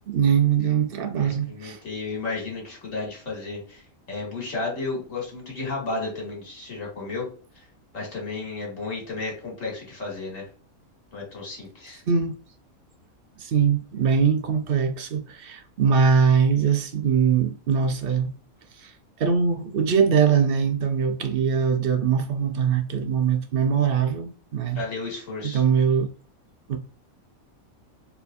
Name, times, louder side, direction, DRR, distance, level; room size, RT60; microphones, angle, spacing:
voice 1, 0.1-1.8 12.1-12.4 13.4-18.3 18.8-18.9 19.2-24.8 25.4-26.1 26.7-26.8, right 6 dB, 55° right, 0.7 m, -22 dB
voice 2, 1.1-3.8 4.1-7.3 7.9-10.5 11.1-12.0 24.7-25.6, left 3 dB, 65° left, 2.3 m, -33 dB
4.6 x 3.4 x 2.5 m
omnidirectional pair, 1.5 m